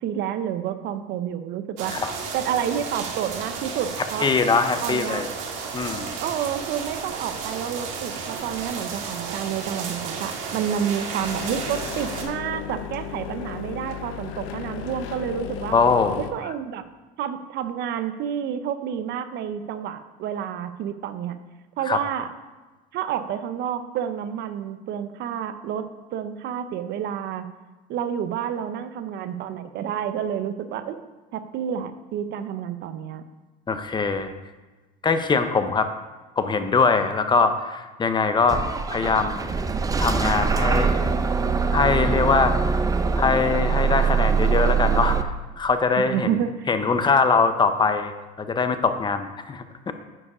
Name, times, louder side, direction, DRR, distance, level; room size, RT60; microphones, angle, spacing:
voice 1, 0.0-2.0 2.3-4.3 4.8-5.2 6.2-15.8 16.2-16.8 17.2-21.4 21.8-22.3 22.9-27.5 27.9-31.0 31.3-33.2 46.0-46.7, right 9 dB, 55° right, 10 dB, 0.7 m, -29 dB
sound 1, 1.8-12.2, right 5 dB, 75° right, 1.6 m, -33 dB
voice 2, 4.2-5.3 5.7-6.2 15.7-16.2 21.9-22.0 33.7-34.3 35.0-35.9 36.4-38.6 38.9-39.5 40.0-41.1 41.7-42.6 43.2-46.3 46.7-48.1 48.4-49.9, left 4 dB, 20° left, 9 dB, 0.7 m, -22 dB
sound 2, 11.2-16.3, left 10 dB, 70° left, 0.8 m, -35 dB
Bus / Engine starting, 38.5-45.2, right 5 dB, 15° right, 0.6 m, -23 dB
9.7 x 4.9 x 4.9 m, 1.2 s
supercardioid pair, 110°, 20 cm